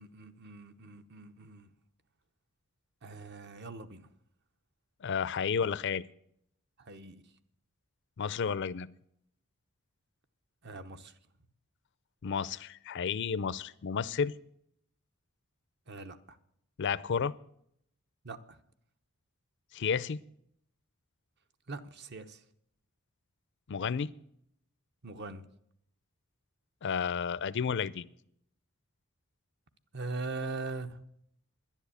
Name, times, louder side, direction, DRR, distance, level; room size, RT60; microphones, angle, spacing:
voice 1, 0.0-1.7 3.0-4.1 6.8-7.2 10.6-11.1 15.9-16.2 18.2-18.6 21.7-22.4 25.0-25.4 29.9-31.0, right 3 dB, 55° right, 10 dB, 0.9 m, -41 dB
voice 2, 5.0-6.0 8.2-8.9 12.2-14.3 16.8-17.3 19.7-20.2 23.7-24.1 26.8-28.0, left 6 dB, 55° left, 19 dB, 0.5 m, -31 dB
11.0 x 10.5 x 8.4 m, 0.72 s
head